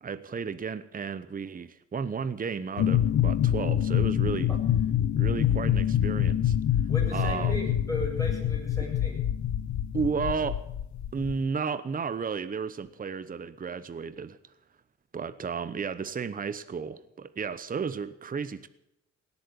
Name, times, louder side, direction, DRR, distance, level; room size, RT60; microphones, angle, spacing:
voice 1, 0.0-4.5 5.1-6.6 7.1-7.6 9.9-10.6 11.1-14.4 15.1-18.7, right 5 dB, 30° right, 14 dB, 0.9 m, -33 dB
sound 1, 2.8-11.4, left 10 dB, 70° left, 1.0 m, -26 dB
voice 2, 6.9-9.2, left 1 dB, 10° left, -1 dB, 7.3 m, -36 dB
17.5 x 8.3 x 9.9 m, 0.83 s
cardioid pair, 90°, 30 cm